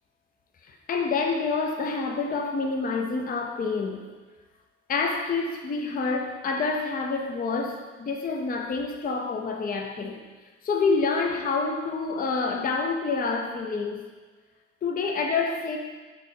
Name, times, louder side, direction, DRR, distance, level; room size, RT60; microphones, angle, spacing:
voice 1, 0.6-4.1 4.9-10.2 10.6-14.1 14.8-15.8, left 4 dB, 30° left, 2 dB, 0.5 m, -27 dB
4.2 x 2.7 x 3.7 m, 1.3 s
cardioid pair, 70°, 31 cm